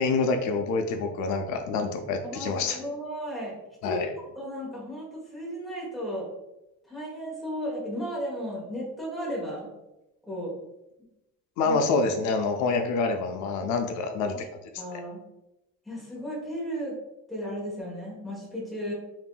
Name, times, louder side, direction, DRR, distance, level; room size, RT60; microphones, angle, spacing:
voice 1, 0.0-2.8 3.8-4.1 11.6-14.5 14.9-15.0, left 4 dB, 75° left, 5 dB, 0.5 m, -27 dB
voice 2, 2.2-4.0 4.3-6.3 6.9-9.7 10.2-10.5 11.6-11.8 14.3-14.4 14.8-15.2 15.9-16.9 17.3-18.9, equal, ahead, -6 dB, 1.2 m, -34 dB
5.6 x 2.6 x 2.3 m, 0.91 s
cardioid pair, 170°, 30 cm